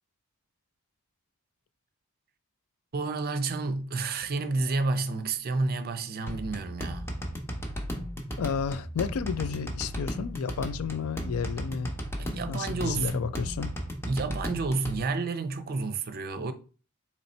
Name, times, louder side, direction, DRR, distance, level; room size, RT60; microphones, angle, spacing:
voice 1, 2.9-7.1 12.2-13.3 14.0-16.5, right 3 dB, 45° right, 0.5 m, -30 dB
sound 1, 6.3-15.0, equal, 10° left, 0.7 m, -35 dB
voice 2, 8.4-11.9 12.5-13.7, left 6 dB, 75° left, 0.4 m, -32 dB
4.1 x 3.1 x 4.2 m
head